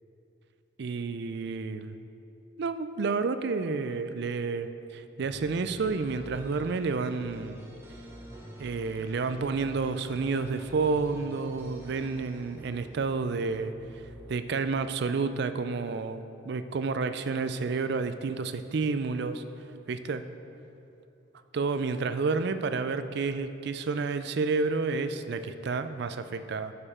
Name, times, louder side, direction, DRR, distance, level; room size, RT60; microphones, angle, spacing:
voice 1, 0.8-2.0 2.6-7.6 8.6-19.4 19.9-20.2 21.5-26.7, right 4 dB, 55° right, 11 dB, 0.4 m, -30 dB
sound 1, 5.2-15.0, right 1 dB, 10° right, 1.0 m, -47 dB
9.7 x 6.8 x 4.3 m, 2.8 s
head